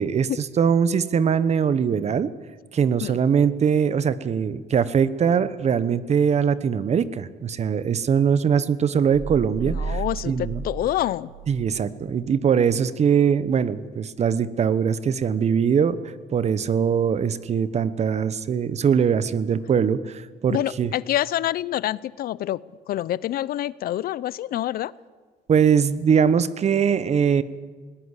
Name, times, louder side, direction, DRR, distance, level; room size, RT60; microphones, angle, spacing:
voice 1, 0.0-2.3 2.7-10.6 11.5-16.0 16.3-20.9 25.5-27.4, right 7 dB, 40° right, 15 dB, 1.0 m, -22 dB
sound 1, 9.1-11.8, right 5 dB, 60° right, 7.1 m, -33 dB
voice 2, 9.6-11.3 20.5-22.6 22.9-24.9, left 13 dB, 60° left, 20 dB, 0.6 m, -27 dB
20.5 x 19.0 x 8.2 m, 1.4 s
cardioid pair, 110°, 17 cm